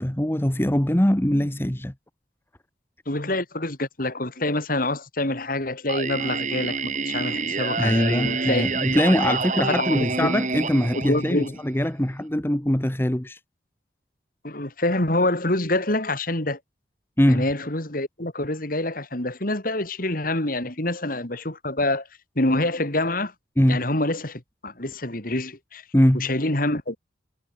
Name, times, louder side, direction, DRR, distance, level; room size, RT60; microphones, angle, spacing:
voice 1, 0.0-1.9 7.8-13.4 17.2-17.5 23.6-23.9 25.9-26.3, equal, 10° left, 1.1 m, -22 dB
voice 2, 3.1-8.7 9.3-9.4 9.7-10.3 10.9-11.5 14.4-16.6 17.3-22.1 22.3-23.3 23.7-25.8 26.1-27.0, left 2 dB, 50° left, 3.0 m, -26 dB
Singing, 5.9-11.8, right 4 dB, 40° right, 3.1 m, -28 dB
head